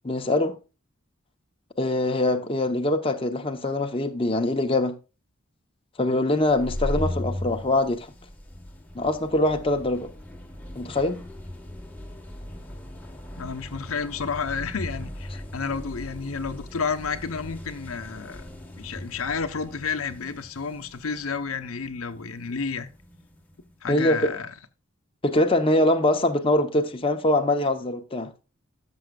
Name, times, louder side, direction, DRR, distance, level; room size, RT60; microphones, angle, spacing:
voice 1, 0.0-0.6 1.8-5.0 6.0-8.1 8.9-10.1 10.7-11.2 23.9-24.3 25.2-28.3, left 1 dB, 25° left, 0.8 m, -23 dB
sound 1, 6.4-23.8, left 1 dB, 10° left, 1.3 m, -38 dB
voice 2, 13.4-22.9 23.8-24.5, left 5 dB, 90° left, 0.9 m, -31 dB
13.0 x 7.1 x 2.3 m
head